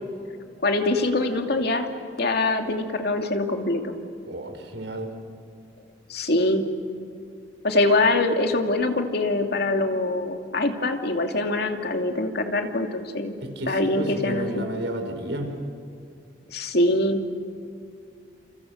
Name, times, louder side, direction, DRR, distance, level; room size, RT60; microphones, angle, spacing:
voice 1, 0.6-1.9 2.2-4.0 6.1-6.7 7.6-13.3 13.7-14.7 16.5-17.2, left 2 dB, 60° left, 4 dB, 2.6 m, -23 dB
voice 2, 4.3-5.1 13.4-15.5, right 1 dB, 70° right, 4 dB, 5.4 m, -31 dB
30.0 x 29.0 x 6.6 m, 2.4 s
head